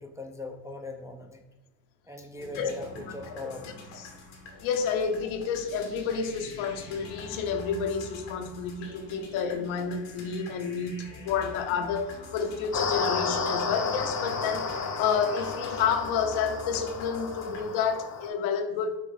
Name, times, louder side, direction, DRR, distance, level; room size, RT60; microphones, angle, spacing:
voice 1, 0.0-1.4 2.1-3.7, left 3 dB, 5° right, 0.4 m, -39 dB
sound 1, 2.4-17.6, left 3 dB, 85° left, 1.1 m, -45 dB
voice 2, 4.6-19.0, left 6 dB, 70° left, 0.7 m, -30 dB
sound 2, 12.7-18.3, left 5 dB, 35° left, 0.8 m, -32 dB
5.7 x 2.7 x 3.2 m
hypercardioid pair, 45°, 50 cm